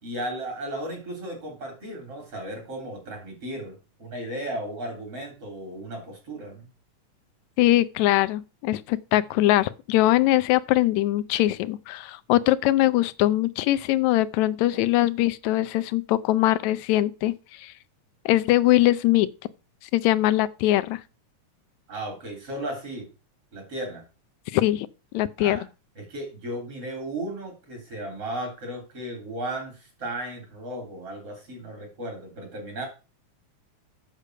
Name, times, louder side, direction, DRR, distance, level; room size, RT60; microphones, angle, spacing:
voice 1, 0.0-6.7 21.9-23.1 23.5-24.0 25.4-25.7 26.0-32.9, right 1 dB, 50° right, 4.7 m, -35 dB
voice 2, 7.6-17.3 17.6-17.7 18.2-19.3 19.9-21.0 24.5-24.9 25.1-25.6, left 15 dB, 75° left, 1.8 m, -22 dB
8.2 x 6.8 x 6.4 m
omnidirectional pair, 3.5 m